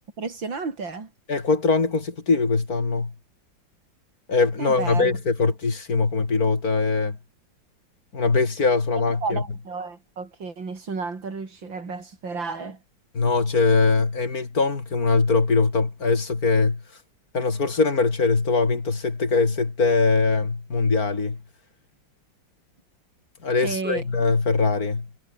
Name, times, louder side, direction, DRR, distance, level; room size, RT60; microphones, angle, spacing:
voice 1, 0.2-1.1 4.6-5.2 9.2-12.8 23.6-24.0, right 4 dB, 85° right, 4.4 m, -32 dB
voice 2, 1.3-3.1 4.3-7.2 8.1-9.4 13.1-16.8 17.3-21.4 23.4-25.1, left 4 dB, 50° left, 3.3 m, -22 dB
omnidirectional pair, 2.0 m